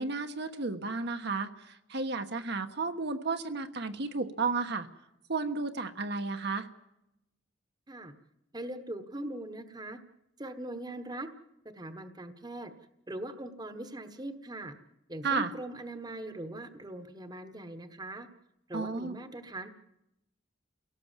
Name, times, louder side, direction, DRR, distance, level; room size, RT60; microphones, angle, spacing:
voice 1, 0.0-1.5 1.9-4.9 5.3-6.7 15.2-15.5 18.7-19.2, right 4 dB, 60° right, 7 dB, 1.3 m, -32 dB
voice 2, 8.5-10.0 10.4-11.3 11.7-12.7 13.1-14.7 15.1-18.3 18.7-19.7, right 1 dB, 20° right, 9 dB, 1.2 m, -41 dB
29.0 x 17.5 x 7.4 m, 0.89 s
head